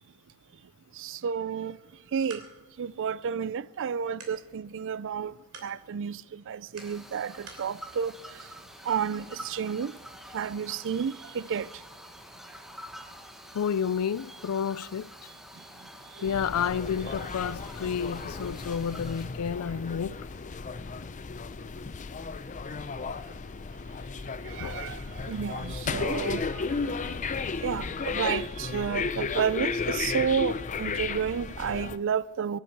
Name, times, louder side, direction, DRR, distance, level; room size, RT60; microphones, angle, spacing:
voice 1, 1.0-1.8 2.1-2.4 2.8-5.3 5.6-8.1 8.9-9.9 10.3-11.7 24.5-25.0 25.3-26.7 27.6-32.6, right 7 dB, 60° right, 0.4 m, -31 dB
sound 1, 1.9-7.7, right 4 dB, 85° right, 3.1 m, -53 dB
sound 2, 6.8-19.3, equal, ahead, 1.1 m, -47 dB
voice 2, 13.6-15.1 16.2-20.1 24.6-24.7, left 7 dB, 90° left, 0.4 m, -30 dB
sound 3, 16.2-32.0, left 4 dB, 35° left, 0.5 m, -34 dB
24.5 x 10.0 x 4.6 m
head